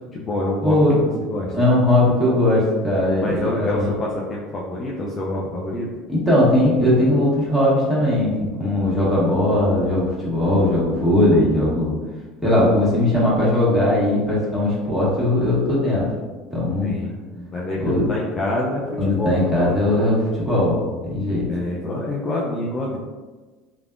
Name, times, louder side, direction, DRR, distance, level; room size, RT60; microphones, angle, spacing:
voice 1, 0.0-1.5 3.2-5.9 16.8-19.8 21.5-23.0, left 1 dB, 35° left, -4 dB, 0.5 m, -27 dB
voice 2, 0.6-1.0 1.5-3.9 6.1-11.9 12.4-16.1 16.5-16.9 17.8-18.1 19.0-20.8 21.1-21.5, left 1 dB, ahead, -8 dB, 1.5 m, -19 dB
3.2 x 2.3 x 2.4 m, 1.3 s
hypercardioid pair, 70°, 0 cm